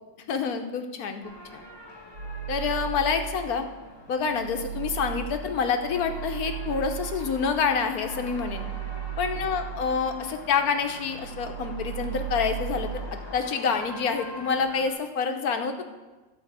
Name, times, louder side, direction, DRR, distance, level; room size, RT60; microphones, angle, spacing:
voice 1, 0.3-1.6 2.5-3.7 4.1-8.7 9.2-15.8, left 6 dB, 80° left, 6 dB, 1.5 m, -27 dB
sound 1, 1.2-14.9, left 1 dB, 20° left, 1.2 m, -45 dB
Low Bass Throb, 2.1-3.6 4.0-10.5 10.8-13.1, right 11 dB, 75° right, 1.5 m, -36 dB
12.5 x 5.1 x 8.1 m, 1.2 s
omnidirectional pair, 1.6 m